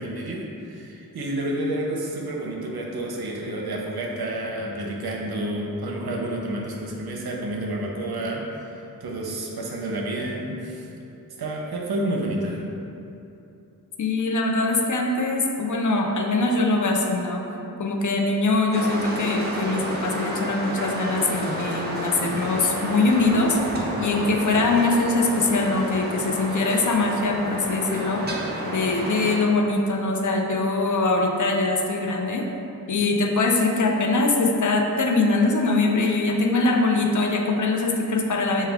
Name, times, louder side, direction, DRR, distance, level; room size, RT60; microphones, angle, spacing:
voice 1, 0.0-10.9 11.4-12.6, right 1 dB, 75° right, -1 dB, 0.6 m, -30 dB
voice 2, 14.0-17.4 17.8-23.6 24.0-28.3 28.7-32.4 32.9-38.7, left 3 dB, 55° left, 1 dB, 0.4 m, -22 dB
sound 1, 18.7-29.4, right 1 dB, 25° right, 0.6 m, -30 dB
4.7 x 2.2 x 3.4 m, 2.8 s
wide cardioid pair, 80°, 38 cm